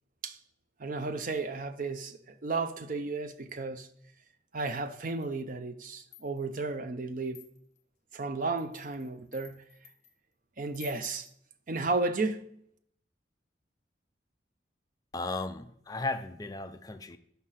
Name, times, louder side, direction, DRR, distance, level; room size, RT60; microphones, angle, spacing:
voice 1, 0.8-3.9 4.5-7.5 8.1-9.6 10.6-11.3 11.7-12.5, right 3 dB, 45° right, 0.6 m, -33 dB
sound 1, 4.7-5.4 5.9-6.6 7.2-7.8 8.4-10.1 10.7-11.3, left 8 dB, 35° left, 0.9 m, -53 dB
voice 2, 15.1-17.2, left 2 dB, 20° left, 0.4 m, -35 dB
5.7 x 5.6 x 6.3 m
head